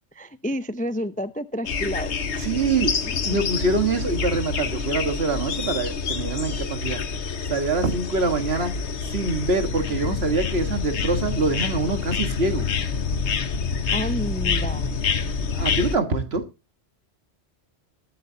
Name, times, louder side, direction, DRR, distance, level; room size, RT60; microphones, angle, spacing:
voice 1, 0.1-2.4 3.1-3.2 13.9-15.0, equal, 10° left, 13 dB, 0.4 m, -30 dB
sound 1, 1.6-16.0, left 5 dB, 75° left, 1.3 m, -27 dB
voice 2, 2.4-3.0 3.2-7.0 7.5-8.7 9.1-12.7 15.5-16.5, right 3 dB, 65° right, 8 dB, 1.9 m, -25 dB
20.0 x 8.2 x 2.8 m, 0.27 s
omnidirectional pair, 1.2 m